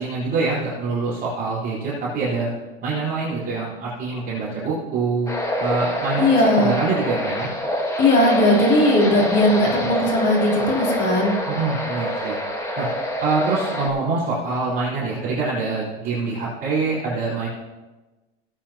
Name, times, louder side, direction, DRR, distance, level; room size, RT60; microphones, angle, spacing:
voice 1, 0.0-2.5 2.8-5.3 5.6-7.5 11.5-12.4 12.8-12.9 13.2-17.5, right 4 dB, 30° right, -9 dB, 4.6 m, -25 dB
sound 1, 5.3-13.9, equal, 10° left, 1.6 m, -26 dB
voice 2, 6.2-6.7 8.0-11.4, left 1 dB, 35° left, -3 dB, 3.7 m, -18 dB
18.0 x 9.0 x 3.0 m, 1.2 s
supercardioid pair, 145°, 30 cm